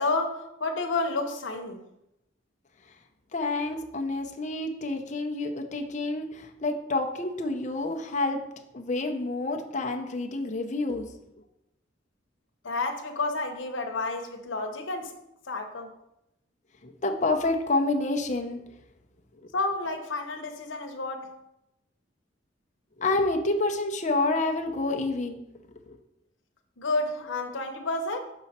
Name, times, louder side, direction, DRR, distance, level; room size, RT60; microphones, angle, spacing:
voice 1, 0.0-1.8 12.6-15.1 15.5-15.9 19.5-21.3 26.8-28.2, left 3 dB, 90° left, 5 dB, 0.9 m, -30 dB
voice 2, 3.3-8.4 8.7-11.1 16.8-18.6 19.4-19.5 23.0-25.4 25.9-26.0, left 2 dB, 40° left, 3 dB, 0.7 m, -28 dB
5.9 x 5.6 x 4.2 m, 0.85 s
head